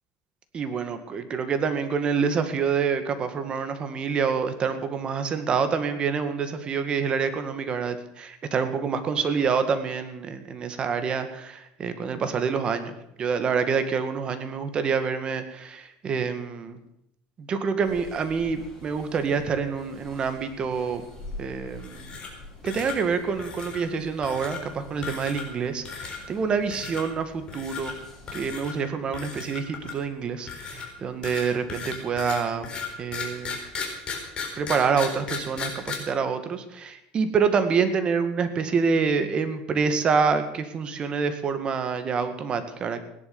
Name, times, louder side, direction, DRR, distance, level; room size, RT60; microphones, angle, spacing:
voice 1, 0.5-16.8 17.4-21.0 21.4-22.2 22.6-28.0 28.3-32.7 33.0-33.6 34.6-43.0, right 5 dB, 30° right, 9 dB, 1.9 m, -27 dB
sound 1, 17.8-28.5, left 1 dB, 10° left, 7.6 m, -46 dB
sound 2, 21.8-22.4 22.7-23.0 23.4-23.8 24.2-24.6 25.0-25.6 25.9-26.2 26.7-27.0 27.5-27.9 28.3-28.7 29.1-30.1 30.5-35.9, left 5 dB, 30° left, 4.3 m, -35 dB
17.0 x 11.0 x 7.1 m, 0.79 s
cardioid pair, 140°, 3 cm